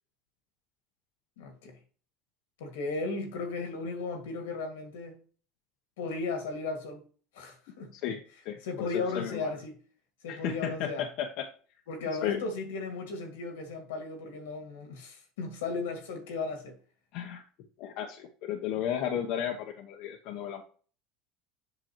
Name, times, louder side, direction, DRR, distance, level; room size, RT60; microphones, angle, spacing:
voice 1, 1.4-1.8 2.6-5.2 6.0-7.0 7.3-7.9 8.6-9.7 10.2-11.1 11.9-16.7, left 3 dB, 90° left, 2.0 m, -35 dB
voice 2, 7.9-9.5 10.3-11.5 12.2-12.4 17.1-17.4 17.8-20.6, left 9 dB, 65° left, 0.9 m, -34 dB
7.9 x 6.0 x 3.0 m
supercardioid pair, 110°, 0 cm